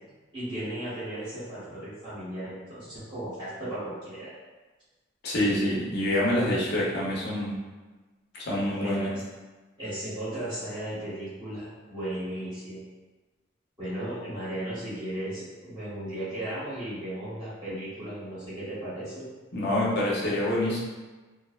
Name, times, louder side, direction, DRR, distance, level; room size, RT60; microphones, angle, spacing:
voice 1, 0.3-4.3 8.6-9.1 9.8-12.8 13.8-19.2, right 1 dB, 25° right, -14 dB, 0.9 m, -36 dB
voice 2, 5.2-7.6 8.5-9.1 19.5-20.8, left 1 dB, 50° left, -5 dB, 0.6 m, -26 dB
2.5 x 2.1 x 2.3 m, 1.3 s
head